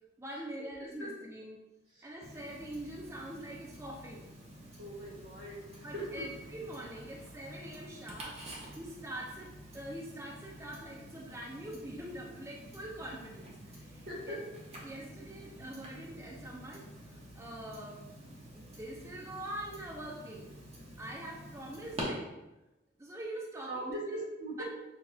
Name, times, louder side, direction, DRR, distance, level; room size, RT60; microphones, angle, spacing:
voice 1, 0.2-1.6 2.0-4.3 5.8-8.4 8.8-14.4 14.8-16.8 17.4-18.0 18.5-20.5 21.0-22.3 23.0-24.2 24.6-24.7, right 1 dB, 15° right, -3 dB, 0.5 m, -44 dB
Tick-tock, 2.2-22.0, right 1 dB, 35° right, 0.9 m, -49 dB
voice 2, 4.8-5.6 5.9-6.2 14.1-14.4 23.7-24.6, right 1 dB, 65° right, -4 dB, 1.5 m, -40 dB
6.6 x 2.3 x 2.7 m, 0.99 s
head